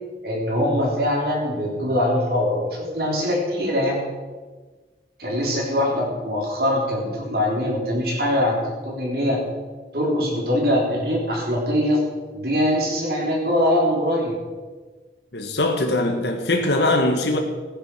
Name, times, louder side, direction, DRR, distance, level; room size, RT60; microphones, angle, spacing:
voice 1, 0.2-4.0 5.2-9.4 9.9-12.0 12.3-14.4, left 1 dB, 60° right, -2 dB, 3.8 m, -22 dB
voice 2, 15.3-17.4, left 2 dB, 75° left, 3 dB, 1.7 m, -21 dB
15.5 x 10.0 x 6.3 m, 1.4 s
head